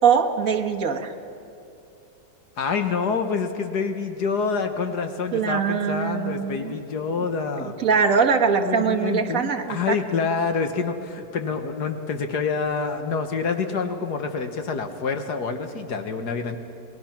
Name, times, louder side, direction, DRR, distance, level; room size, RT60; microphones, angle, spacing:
voice 1, 0.0-1.1 5.3-6.7 7.6-9.9, right 6 dB, 50° right, 3 dB, 1.7 m, -22 dB
voice 2, 2.6-7.7 8.6-16.6, left 5 dB, 65° left, 7 dB, 1.7 m, -27 dB
28.5 x 19.5 x 5.9 m, 2.7 s
omnidirectional pair, 2.0 m